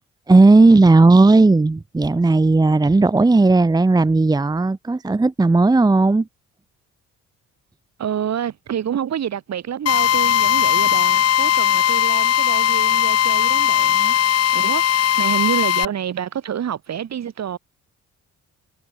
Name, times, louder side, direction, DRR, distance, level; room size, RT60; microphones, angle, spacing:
voice 1, 0.3-6.3, right 3 dB, 15° right, 0.8 m, -14 dB
voice 2, 8.0-17.6, right 9 dB, 60° right, 5.9 m, -28 dB
Drill, 9.9-15.9, left 11 dB, 55° left, 1.0 m, -18 dB
cardioid pair, 90°, 30 cm